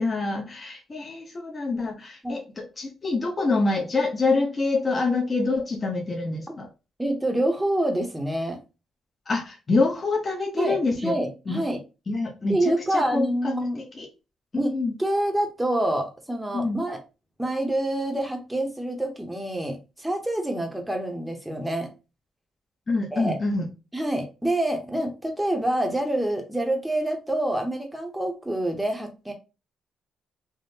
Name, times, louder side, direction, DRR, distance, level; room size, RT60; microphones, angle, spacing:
voice 1, 0.0-6.7 9.3-11.1 11.5-11.6 12.1-14.1 14.5-14.9 16.5-16.8 22.9-23.7, left 3 dB, 35° left, 0 dB, 0.7 m, -26 dB
voice 2, 7.0-8.6 10.5-11.8 12.5-13.8 14.6-17.0 17.4-21.9 23.1-23.4 23.9-29.3, right 1 dB, 5° right, 3 dB, 0.8 m, -27 dB
3.5 x 2.1 x 2.7 m, 0.30 s
cardioid pair, 90°, 0 cm